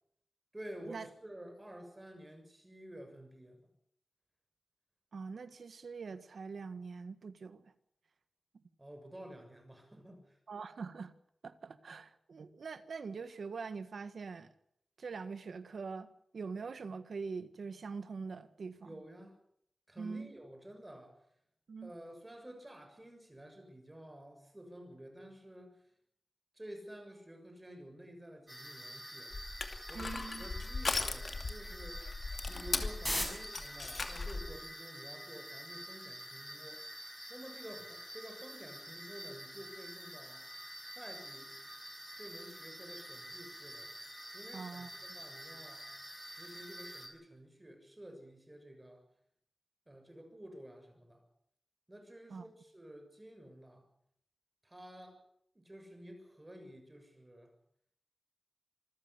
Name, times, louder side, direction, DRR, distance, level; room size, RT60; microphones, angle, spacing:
voice 1, 0.5-3.6 8.8-10.4 18.8-19.4 19.9-21.1 21.8-25.8 26.5-29.3 29.9-32.0 32.5-36.8 37.3-40.5 41.0-41.5 42.2-43.9 44.3-45.9 46.3-49.0 49.9-51.2 51.9-53.9 54.6-55.2 55.5-57.5, right 1 dB, 15° right, 7.0 m, -51 dB
voice 2, 5.1-7.7 10.5-11.1 11.4-14.5 15.0-16.1 16.3-19.0 20.0-20.3 21.7-21.9 29.9-30.4 44.5-45.2 52.3-52.4, right 4 dB, 80° right, 1.6 m, -43 dB
sound 1, 28.5-47.1, equal, ahead, 6.6 m, -46 dB
Crushing, 29.3-34.5, left 3 dB, 50° left, 2.6 m, -38 dB
26.5 x 15.0 x 8.3 m
wide cardioid pair, 120°, 0 cm